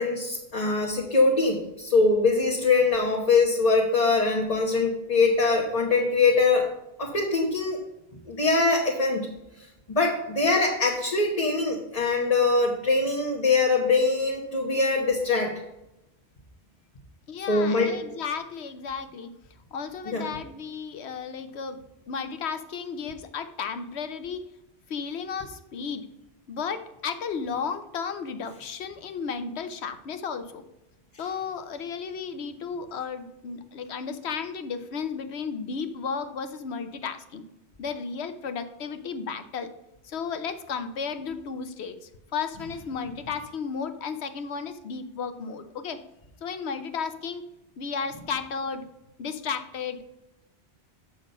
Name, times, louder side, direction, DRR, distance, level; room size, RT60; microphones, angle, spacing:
voice 1, 0.0-6.7 7.0-7.8 8.3-9.3 9.6-15.6 17.5-17.9 20.1-20.3, left 3 dB, 35° left, -1 dB, 1.2 m, -23 dB
voice 2, 17.3-19.3 19.7-21.8 22.1-24.5 24.9-26.1 26.5-30.6 31.2-37.4 37.8-39.7 40.0-46.0 46.4-47.5 47.8-48.8 49.2-50.0, left 6 dB, 80° left, 9 dB, 1.0 m, -33 dB
7.3 x 6.3 x 5.2 m, 0.90 s
omnidirectional pair, 1.1 m